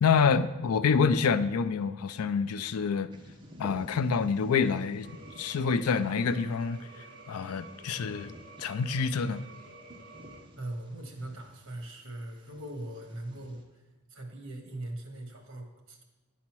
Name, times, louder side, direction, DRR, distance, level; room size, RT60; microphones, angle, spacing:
voice 1, 0.0-3.1 3.6-6.8 7.3-9.4, left 5 dB, 90° left, 0.4 m, -27 dB
Bird vocalization bird call bird song, 3.1-13.6, equal, 20° right, 1.0 m, -52 dB
sound 1, 5.0-10.4, right 2 dB, 45° right, 1.8 m, -50 dB
voice 2, 10.6-13.8 14.1-16.0, right 1 dB, 60° right, 1.6 m, -40 dB
9.9 x 4.2 x 6.0 m
head